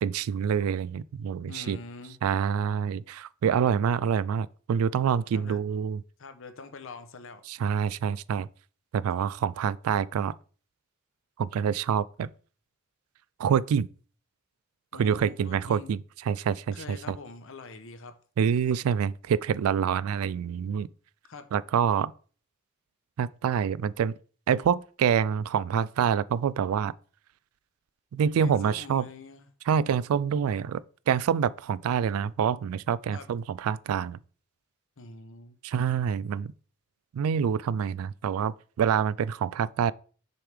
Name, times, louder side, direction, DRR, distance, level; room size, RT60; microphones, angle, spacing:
voice 1, 0.0-1.8 2.2-6.0 7.5-8.5 8.9-10.3 11.4-12.3 13.4-13.9 15.0-17.2 18.4-20.9 21.5-22.1 23.2-24.1 24.5-26.9 28.1-29.1 29.7-34.2 35.6-36.5 37.1-39.9, right 7 dB, 80° right, 0.3 m, -26 dB
voice 2, 1.5-2.2 5.3-5.6 6.2-7.4 14.9-15.9 16.7-18.2 21.3-21.5 28.4-29.5 33.1-33.3 35.0-35.6, left 3 dB, 65° left, 0.8 m, -44 dB
6.8 x 4.8 x 3.4 m
head